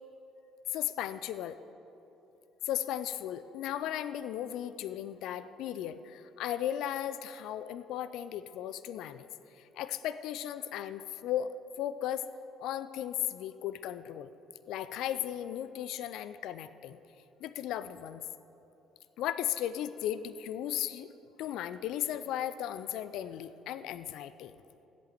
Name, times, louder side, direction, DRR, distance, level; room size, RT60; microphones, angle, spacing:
voice 1, 0.7-1.6 2.7-9.3 9.5-12.3 12.6-14.3 14.7-17.0 17.4-18.2 19.2-21.1 21.4-24.5, left 11 dB, 60° left, 14 dB, 0.4 m, -36 dB
14.0 x 8.3 x 7.4 m, 2.9 s
figure-of-eight pair, 50°, 0 cm